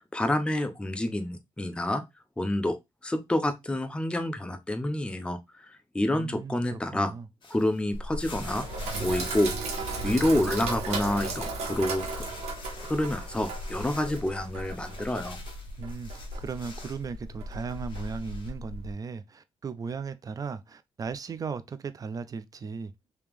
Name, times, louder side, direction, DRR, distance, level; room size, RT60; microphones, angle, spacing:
voice 1, 0.0-2.0 2.4-2.8 3.0-5.7 5.9-7.1 7.5-8.6 9.0-9.5 10.0-12.2 12.8-15.4, left 1 dB, 10° left, 0.6 m, -28 dB
voice 2, 6.1-7.3 15.8-22.9, right 5 dB, 35° right, 0.4 m, -37 dB
sound 1, 7.4-10.4 10.7-17.1 17.5-18.5, left 3 dB, 50° left, 1.2 m, -48 dB
Sink (filling or washing), 7.9-18.9, right 2 dB, 90° right, 1.2 m, -35 dB
3.3 x 2.9 x 3.4 m
cardioid pair, 100°, 11 cm